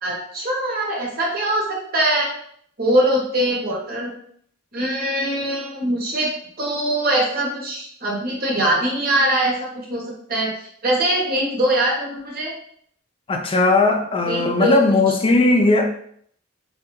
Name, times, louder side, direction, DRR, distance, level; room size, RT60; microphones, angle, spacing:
voice 1, 0.0-2.3 2.8-4.1 4.7-6.3 6.6-10.0 10.3-12.5 14.3-14.8 15.1-15.4, right 1 dB, 45° right, -2 dB, 0.9 m, -22 dB
voice 2, 13.3-15.9, left 2 dB, 25° left, 4 dB, 0.3 m, -17 dB
3.2 x 2.3 x 3.0 m, 0.64 s
head